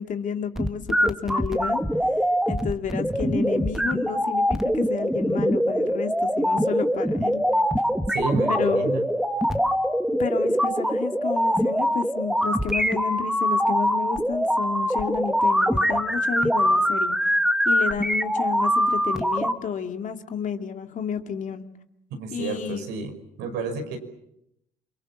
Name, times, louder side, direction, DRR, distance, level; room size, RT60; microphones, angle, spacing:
voice 1, 0.0-1.8 2.5-7.4 8.5-8.9 10.2-17.2 17.6-21.7 22.3-22.8, left 7 dB, 50° left, 6 dB, 2.5 m, -31 dB
sound 1, 0.6-19.5, equal, 5° right, 1.9 m, -23 dB
voice 2, 8.1-9.0 22.2-23.1 23.4-24.0, right 4 dB, 90° right, 5 dB, 5.8 m, -30 dB
29.0 x 23.5 x 7.4 m, 0.80 s
cardioid pair, 110°, 17 cm